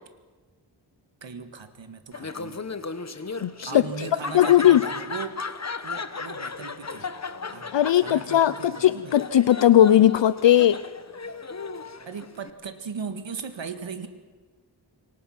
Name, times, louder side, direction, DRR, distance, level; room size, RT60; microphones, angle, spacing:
voice 1, 1.2-2.6 3.6-5.5 5.8-7.1 7.5-7.7 7.9-9.2 12.1-14.1, right 5 dB, 85° right, 8 dB, 1.9 m, -38 dB
Laughter, 2.1-12.5, left 4 dB, 35° left, 1.2 m, -36 dB
voice 2, 3.4-3.8 4.3-4.8 7.7-10.9, left 11 dB, 75° left, 15 dB, 0.6 m, -18 dB
28.0 x 23.5 x 5.9 m, 1.4 s
wide cardioid pair, 85°, 44 cm